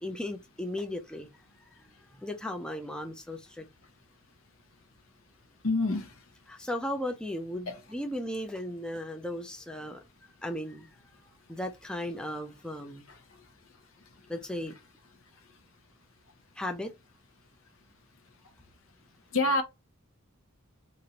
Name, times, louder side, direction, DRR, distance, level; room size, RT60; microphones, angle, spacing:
voice 1, 0.0-3.7 6.5-10.1 10.4-10.9 11.5-13.1 14.3-14.7 16.6-16.9, left 1 dB, 5° left, 0.4 m, -36 dB
voice 2, 5.6-6.1 19.3-19.6, left 2 dB, 75° left, 0.7 m, -25 dB
3.0 x 2.5 x 2.7 m
head